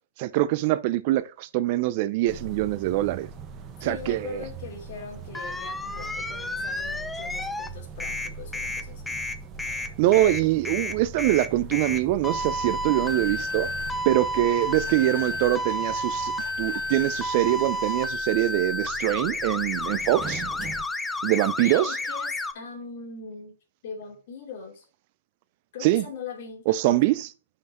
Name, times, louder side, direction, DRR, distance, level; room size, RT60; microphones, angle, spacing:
voice 1, 0.2-3.3 3.8-4.4 10.0-13.7 14.0-16.3 16.6-20.4 21.2-22.0 25.8-26.1 26.7-27.3, right 15 dB, 45° right, 0.6 m, -24 dB
sound 1, 2.3-20.8, right 4 dB, 25° right, 1.0 m, -41 dB
voice 2, 3.8-9.2 21.6-23.5 23.8-24.9 25.7-27.0, left 5 dB, 55° left, 2.9 m, -41 dB
sound 2, 5.3-7.7 8.0-22.5, left 1 dB, 5° left, 0.5 m, -31 dB
sound 3, 12.3-18.1, left 6 dB, 75° left, 1.1 m, -45 dB
5.8 x 5.4 x 4.3 m
hypercardioid pair, 130°, 0 cm